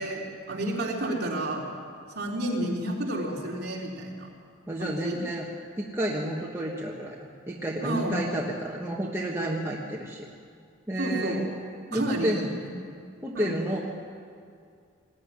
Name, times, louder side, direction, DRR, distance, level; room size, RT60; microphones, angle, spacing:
voice 1, 0.0-1.7 2.1-4.3 4.8-5.2 7.8-8.2 11.0-11.4 11.9-12.7 13.3-13.5, right 1 dB, 50° right, -3 dB, 3.9 m, -30 dB
voice 2, 4.7-5.4 5.8-10.2 10.9-11.5 11.9-12.5 13.2-13.8, right 1 dB, 10° right, -3 dB, 1.5 m, -30 dB
20.5 x 14.0 x 9.9 m, 2.3 s
head